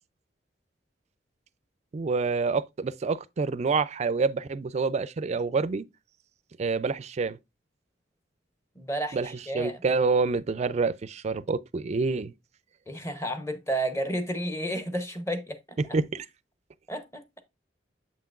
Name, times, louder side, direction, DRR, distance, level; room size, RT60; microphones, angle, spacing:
voice 1, 1.9-5.9 6.6-7.4 9.1-12.3 15.8-16.3, right 4 dB, 35° right, 0.3 m, -27 dB
voice 2, 8.8-9.8 12.9-15.6 16.9-17.2, right 1 dB, 15° left, 0.8 m, -31 dB
7.4 x 5.7 x 2.4 m
head